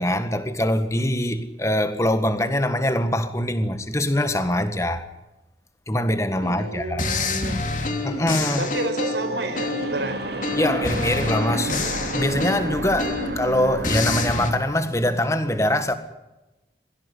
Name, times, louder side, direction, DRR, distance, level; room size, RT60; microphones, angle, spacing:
voice 1, 0.0-5.1 5.9-7.2 8.0-8.7 10.5-15.9, left 1 dB, 15° left, 1.7 m, -23 dB
voice 2, 6.3-7.6 8.6-10.2, right 1 dB, 85° right, 5.1 m, -30 dB
sound 1, 6.4-6.6 7.0-10.0 10.4-13.5 13.8-14.5, left 3 dB, 45° left, 3.1 m, -27 dB
sound 2, 7.7-14.6, right 1 dB, 65° right, 2.4 m, -31 dB
22.5 x 16.0 x 10.0 m
head